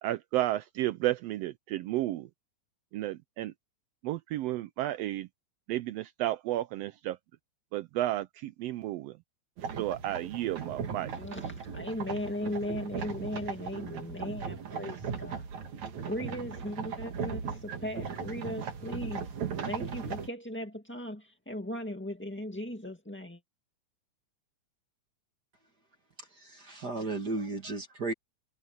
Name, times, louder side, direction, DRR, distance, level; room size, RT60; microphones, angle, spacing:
voice 1, 0.0-2.3 2.9-3.5 4.0-5.3 5.7-7.2 7.7-9.2 9.8-11.1, right 15 dB, 85° right, 1.4 m, -32 dB
sound 1, 9.6-20.3, right 6 dB, 65° right, 3.4 m, -38 dB
voice 2, 11.1-15.5 16.0-19.3 19.6-23.4, left 1 dB, 5° left, 0.9 m, -37 dB
voice 3, 26.2-28.1, right 3 dB, 35° right, 2.2 m, -35 dB
omnidirectional pair, 3.5 m